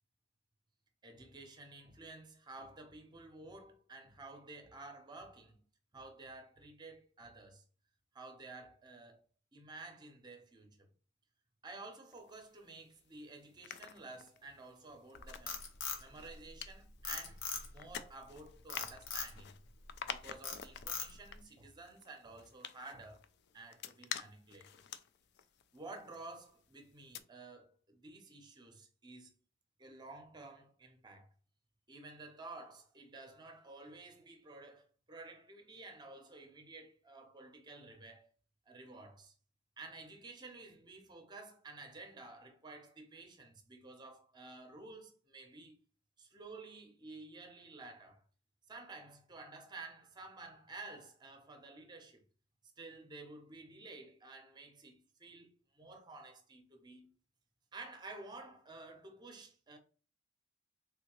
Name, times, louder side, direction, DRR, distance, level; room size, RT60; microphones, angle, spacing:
voice 1, 1.0-5.6 5.9-7.6 8.1-9.2 9.5-10.9 11.6-15.6 16.0-19.5 20.0-23.2 23.5-24.8 25.7-29.3 29.8-31.3 31.9-38.3 38.7-39.3 39.8-45.8 46.2-48.2 48.7-52.2 52.8-57.1 57.7-59.8, right 3 dB, 20° right, 0.7 m, -52 dB
sound 1, 12.1-13.0 13.4-26.6 26.9-27.2, left 9 dB, 55° left, 0.3 m, -49 dB
Frog, 15.1-16.7 17.0-17.9 18.7-19.3 19.8-20.1 20.4-21.4, left 5 dB, 70° left, 0.8 m, -40 dB
3.5 x 2.7 x 2.9 m
head